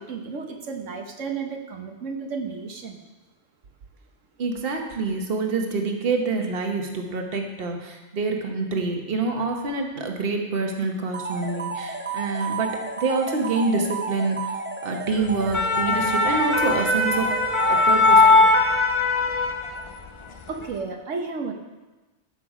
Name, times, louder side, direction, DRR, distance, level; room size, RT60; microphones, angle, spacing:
voice 1, 0.0-3.0 20.5-21.5, right 5 dB, 90° right, 3 dB, 1.4 m, -32 dB
voice 2, 4.4-14.5 14.8-17.3 17.7-18.4, right 3 dB, 50° right, 3 dB, 1.3 m, -26 dB
sound 1, 11.1-18.9, right 4 dB, 10° right, 0.6 m, -33 dB
sound 2, 15.3-20.1 20.4-20.7, left 3 dB, 40° left, 0.5 m, -20 dB
14.0 x 5.9 x 4.9 m, 1.1 s
omnidirectional pair, 1.2 m